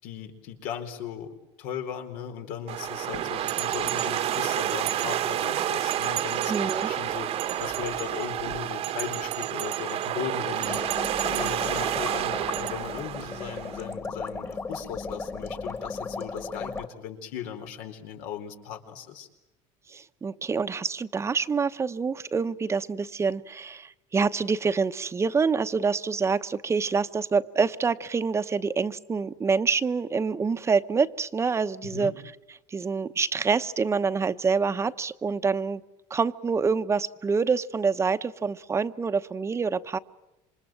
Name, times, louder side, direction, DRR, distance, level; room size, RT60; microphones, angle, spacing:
voice 1, 0.0-1.3 1.6-7.3 7.6-19.3 31.9-32.1, left 8 dB, 80° left, 5 dB, 4.4 m, -37 dB
sound 1, 2.7-13.9, right 11 dB, 50° right, 1.2 m, -29 dB
Bell, 3.5-5.5 5.9-6.9 7.3-8.3 8.8-10.1 10.5-11.9 12.5-12.7, right 21 dB, 75° right, 1.6 m, -38 dB
voice 2, 6.5-6.9 19.9-32.1 32.7-35.8 36.1-40.0, right 5 dB, 20° right, 11 dB, 1.0 m, -26 dB
sound 2, 10.7-16.9, left 4 dB, 20° left, 1.8 m, -36 dB
28.0 x 26.0 x 7.7 m, 0.99 s
cardioid pair, 140°, 13 cm